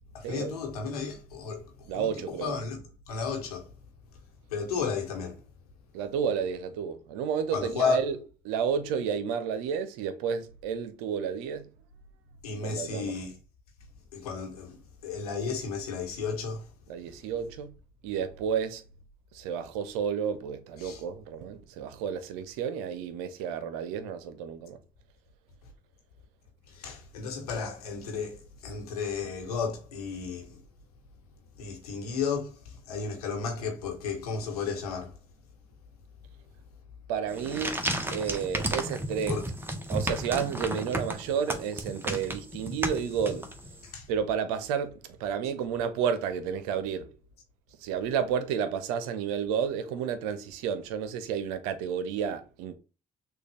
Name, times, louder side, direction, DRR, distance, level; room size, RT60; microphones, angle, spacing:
voice 1, 0.1-2.8 3.1-3.7 4.5-5.4 7.5-8.0 12.4-13.3 14.1-16.7 20.8-21.0 26.7-30.6 31.6-35.2 39.3-39.5 42.1-42.2 43.8-44.1, left 5 dB, 90° left, 1.1 m, -33 dB
voice 2, 1.9-2.5 5.9-8.2 8.4-11.7 12.6-13.1 16.9-17.7 18.0-18.8 19.3-24.8 37.1-37.8 38.1-39.3 39.9-43.5 44.1-47.2 47.8-52.7, right 7 dB, 80° right, 0.7 m, -31 dB
sound 1, 37.3-43.8, right 1 dB, 10° right, 1.1 m, -33 dB
6.2 x 2.4 x 3.4 m
hypercardioid pair, 50°, 19 cm